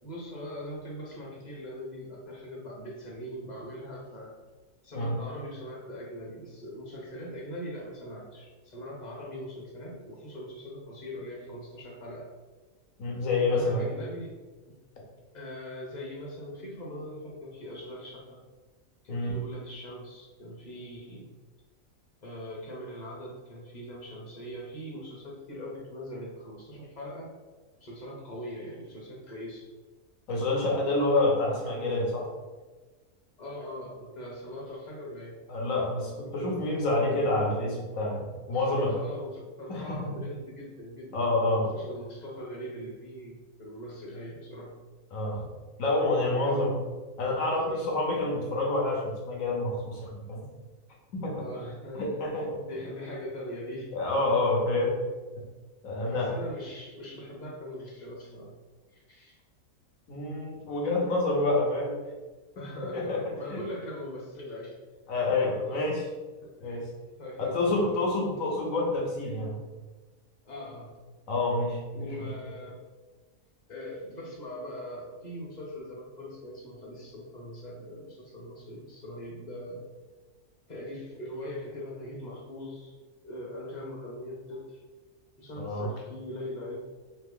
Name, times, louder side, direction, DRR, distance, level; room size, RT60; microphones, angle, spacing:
voice 1, 0.0-4.4 4.8-12.3 13.4-14.4 15.3-18.4 19.0-21.3 22.2-27.3 27.8-29.7 33.4-35.4 38.5-44.8 46.2-46.7 47.6-47.8 51.3-53.9 56.0-58.6 58.9-59.4 62.5-64.8 65.4-65.5 66.4-66.8 67.2-68.0 70.4-71.0 71.9-72.8 73.7-79.8 80.7-82.9 83.2-84.8 85.4-86.8, equal, 35° left, -3 dB, 0.9 m, -41 dB
voice 2, 13.0-13.9 19.1-19.4 30.3-32.3 35.5-39.0 39.7-40.1 41.1-41.8 45.1-45.5 45.8-46.8 47.2-50.5 51.1-51.4 52.0-52.6 53.9-55.0 55.8-56.4 60.1-62.0 62.9-63.6 65.1-66.1 66.6-66.9 67.4-69.6 71.3-72.3 85.6-85.9, left 2 dB, 70° left, -2 dB, 1.4 m, -28 dB
3.4 x 3.3 x 3.7 m, 1.3 s
omnidirectional pair, 1.4 m